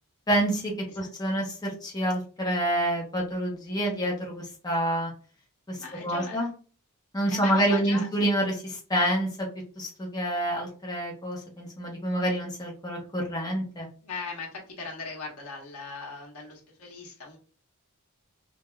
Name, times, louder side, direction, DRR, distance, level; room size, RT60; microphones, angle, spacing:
voice 1, 0.3-5.1 5.7-6.5 7.1-9.5 9.8-13.9, right 1 dB, 15° left, -2 dB, 0.9 m, -28 dB
voice 2, 5.8-6.5 7.3-8.1 14.0-17.4, left 4 dB, 85° left, -1 dB, 1.4 m, -39 dB
4.7 x 2.7 x 2.3 m, 0.38 s
head